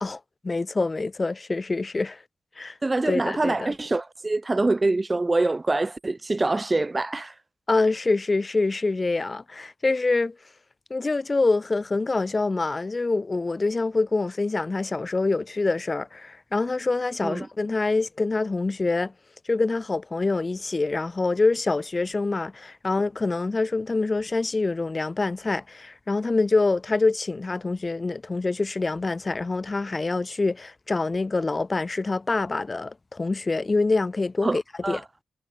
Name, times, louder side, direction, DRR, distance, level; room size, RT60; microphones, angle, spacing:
voice 1, 0.0-2.2 2.6-2.8 3.1-3.7 7.7-10.3 10.9-19.1 19.5-35.0, left 3 dB, 30° left, 0.7 m, -25 dB
voice 2, 2.8-7.3 17.2-17.5 34.4-35.0, right 2 dB, 25° right, 0.4 m, -25 dB
cardioid pair, 65°, 0 cm